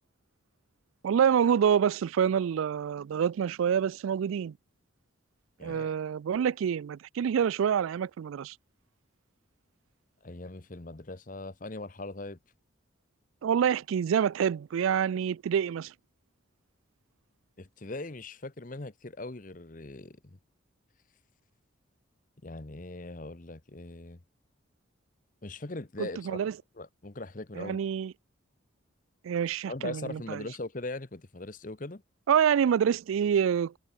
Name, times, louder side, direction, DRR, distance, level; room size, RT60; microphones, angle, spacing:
voice 1, 1.0-4.5 5.6-8.5 13.4-15.9 26.0-26.5 27.6-28.1 29.2-30.4 32.3-33.8, right 8 dB, 80° right, 0.3 m, -27 dB
voice 2, 5.6-6.0 10.2-12.4 17.6-20.4 22.4-24.2 25.4-26.4 26.8-27.8 29.7-32.0, left 2 dB, 40° left, 1.0 m, -40 dB
head